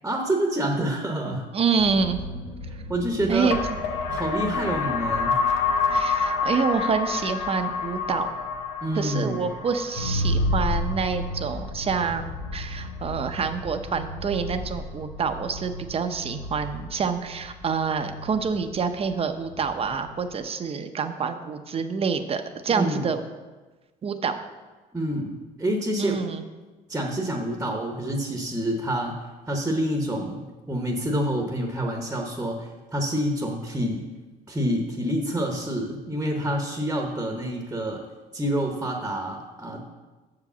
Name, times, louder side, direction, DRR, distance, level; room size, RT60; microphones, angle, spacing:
voice 1, 0.0-1.4 2.9-3.5 4.1-5.4 8.8-9.4 22.7-23.1 24.9-26.2 26.9-29.2 29.5-34.0 34.5-38.0 38.3-39.8, right 1 dB, 10° right, 1 dB, 0.9 m, -27 dB
voice 2, 1.3-2.2 3.3-3.6 5.9-8.3 8.9-12.2 12.5-23.2 24.0-24.4 26.0-26.4, right 5 dB, 35° right, 8 dB, 0.6 m, -27 dB
sound 1, 1.8-19.0 19.4-19.8, left 3 dB, 85° left, 0.9 m, -29 dB
6.4 x 4.9 x 6.8 m, 1.3 s
cardioid pair, 110°, 17 cm